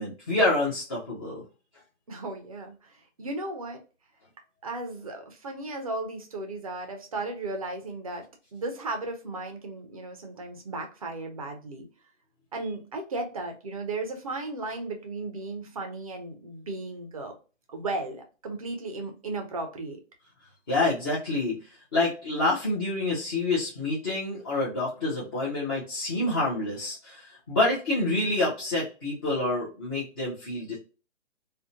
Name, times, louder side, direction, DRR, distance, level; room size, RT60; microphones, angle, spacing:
voice 1, 0.0-1.4 20.7-21.6 21.9-30.8, left 2 dB, 20° left, -9 dB, 0.5 m, -27 dB
voice 2, 2.1-3.8 4.6-8.2 8.5-11.9 12.5-17.3 17.7-20.0, right 2 dB, 30° right, 3 dB, 0.4 m, -35 dB
2.6 x 2.1 x 2.6 m, 0.34 s
figure-of-eight pair, 140°, 36 cm